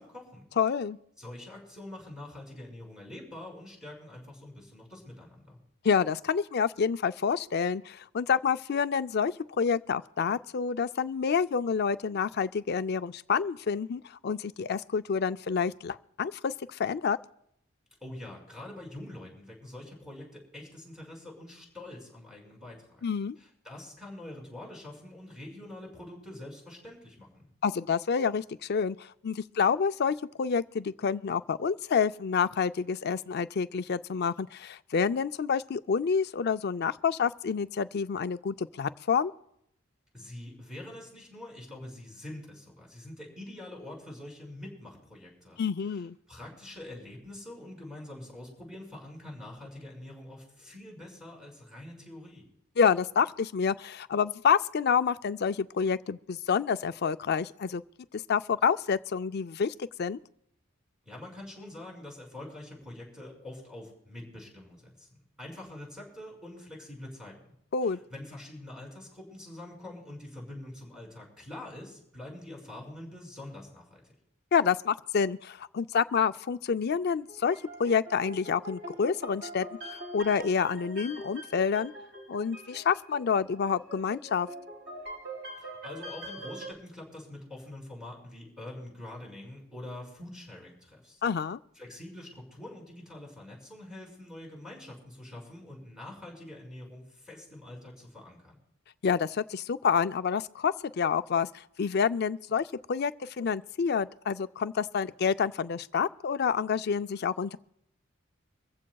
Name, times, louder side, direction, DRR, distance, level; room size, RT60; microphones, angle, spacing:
voice 1, 0.0-0.5 1.2-5.6 18.0-23.0 23.4-27.5 40.1-45.6 45.9-52.5 61.0-65.1 65.4-67.6 67.8-74.1 85.6-91.2 91.8-98.6, left 1 dB, 5° right, 5.2 m, -45 dB
voice 2, 0.6-1.0 5.8-17.2 23.0-23.4 27.6-39.3 45.6-46.2 52.8-57.8 58.3-60.2 67.7-68.0 74.5-81.9 82.3-84.5 91.2-91.6 99.0-107.6, left 6 dB, 55° left, 0.4 m, -28 dB
sound 1, 77.2-86.7, right 1 dB, 55° right, 2.8 m, -44 dB
24.0 x 15.0 x 2.3 m
head